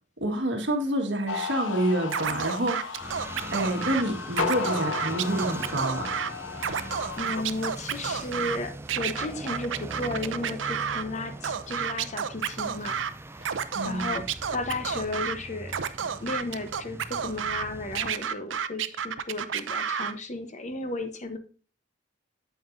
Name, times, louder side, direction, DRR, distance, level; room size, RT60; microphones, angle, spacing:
voice 1, 0.2-3.0 3.5-6.1 13.7-14.2, right 1 dB, 65° right, 1.7 m, -28 dB
sound 1, 1.3-7.4, left 5 dB, 85° left, 0.5 m, -34 dB
Scratching (performance technique), 2.1-4.0 4.3-6.3 6.6-8.6 8.9-11.0 11.4-13.1 13.4-15.3 15.7-17.6 17.9-20.1, right 7 dB, 85° right, 0.6 m, -30 dB
sound 2, 3.0-18.1, right 2 dB, 15° right, 0.4 m, -41 dB
voice 2, 7.2-13.0 13.8-14.2 14.5-15.7 16.2-21.4, left 2 dB, 40° left, 1.0 m, -34 dB
9.0 x 7.6 x 2.6 m
head